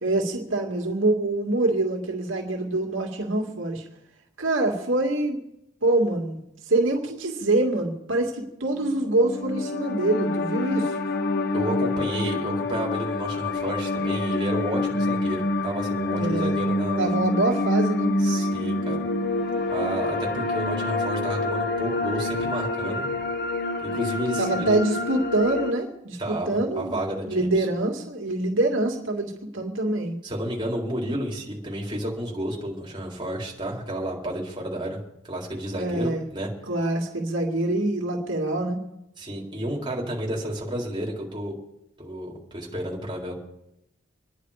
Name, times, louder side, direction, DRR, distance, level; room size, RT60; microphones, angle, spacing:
voice 1, 0.0-3.8 4.4-5.4 5.8-6.4 6.7-10.9 16.1-16.6 17.0-18.1 24.4-30.2 35.7-36.3 36.7-38.8, right 2 dB, 80° right, 1 dB, 2.5 m, -25 dB
sound 1, 8.8-25.7, left 2 dB, 55° left, 1.4 m, -27 dB
voice 2, 11.5-17.2 18.2-19.0 19.7-23.0 23.8-24.8 26.2-27.6 30.2-35.0 35.2-36.5 39.2-41.6 42.0-43.4, right 1 dB, 25° right, -2 dB, 3.9 m, -31 dB
27.0 x 10.5 x 5.0 m, 0.87 s
head